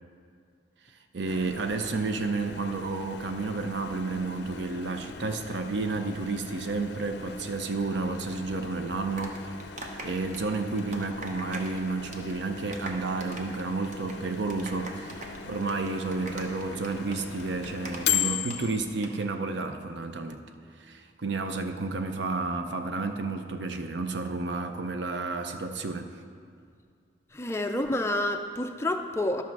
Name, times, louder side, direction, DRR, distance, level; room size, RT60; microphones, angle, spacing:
voice 1, 1.1-9.5 10.0-20.4 20.8-26.1, right 3 dB, 75° right, 7 dB, 0.6 m, -31 dB
Microwave oven, 1.3-19.0, left 8 dB, 65° left, 0.5 m, -38 dB
sound 1, 8.9-11.8 12.0-12.3 12.6-18.6 18.9-19.1, right 2 dB, 40° right, 1.0 m, -41 dB
voice 2, 27.3-29.4, left 1 dB, 15° left, 5 dB, 0.4 m, -29 dB
12.0 x 6.5 x 4.7 m, 2.2 s
head